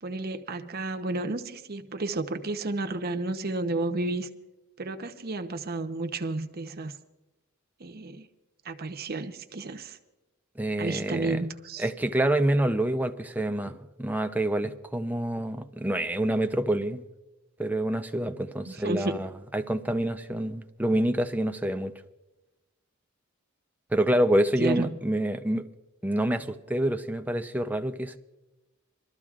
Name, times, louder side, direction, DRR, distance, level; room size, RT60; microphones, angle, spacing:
voice 1, 0.0-4.3 4.8-6.9 7.8-8.3 8.6-10.0 10.8-11.9 18.7-19.2 24.6-25.0, right 2 dB, 50° right, 0.8 m, -32 dB
voice 2, 10.6-11.5 11.8-17.0 17.6-21.9 23.9-25.7 26.0-28.2, right 1 dB, 10° right, 0.6 m, -27 dB
25.0 x 13.0 x 2.4 m
head